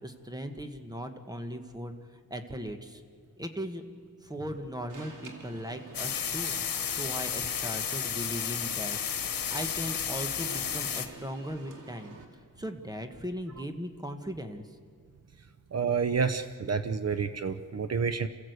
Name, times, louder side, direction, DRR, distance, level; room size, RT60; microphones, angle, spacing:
voice 1, 0.0-2.0 2.3-3.0 3.4-3.9 4.2-6.6 6.9-12.2 12.6-14.7, equal, 10° right, 6 dB, 1.4 m, -38 dB
Alarm, 4.9-12.2, right 3 dB, 65° right, 2.3 m, -48 dB
sound 1, 5.9-11.1, left 8 dB, 80° left, 1.4 m, -32 dB
voice 2, 15.7-18.3, right 5 dB, 50° right, 11 dB, 0.8 m, -29 dB
28.0 x 15.0 x 8.1 m, 2.3 s
wide cardioid pair, 110°, 33 cm